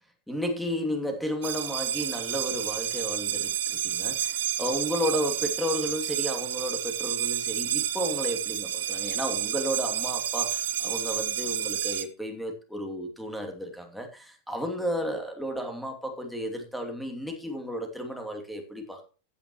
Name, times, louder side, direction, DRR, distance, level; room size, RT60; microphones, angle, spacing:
voice 1, 0.3-19.0, equal, ahead, 2.8 m, -33 dB
sound 1, 1.4-12.0, right 12 dB, 60° right, 1.3 m, -30 dB
15.0 x 9.7 x 3.1 m
figure-of-eight pair, 90°, 0 cm